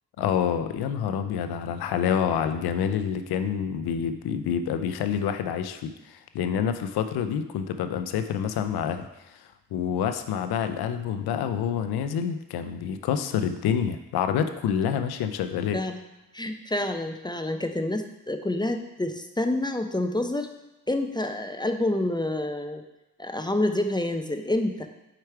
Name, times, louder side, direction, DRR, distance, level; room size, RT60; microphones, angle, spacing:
voice 1, 0.2-15.8, left 8 dB, 85° left, 9 dB, 0.5 m, -27 dB
voice 2, 16.3-20.5 20.9-22.8 23.2-24.9, left 1 dB, 10° left, 6 dB, 0.5 m, -28 dB
4.9 x 4.6 x 4.5 m, 1.0 s
cardioid pair, 55°, 37 cm